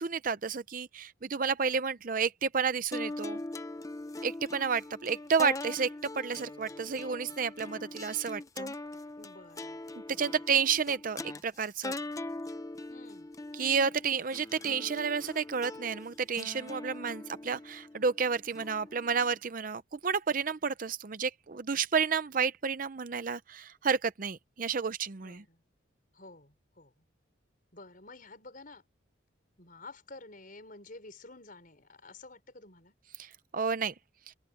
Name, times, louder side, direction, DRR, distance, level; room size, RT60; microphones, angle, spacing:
voice 1, 0.0-3.4 4.2-8.7 10.2-11.9 13.6-25.4 33.2-33.9, right 6 dB, 45° right, 0.6 m, -31 dB
sound 1, 2.9-19.4, left 2 dB, 15° left, 0.7 m, -42 dB
voice 2, 7.7-8.0 9.2-10.4 12.9-13.3 25.1-25.6 26.1-27.1 27.7-28.8 29.6-33.0, left 2 dB, 45° left, 5.4 m, -51 dB
open air
head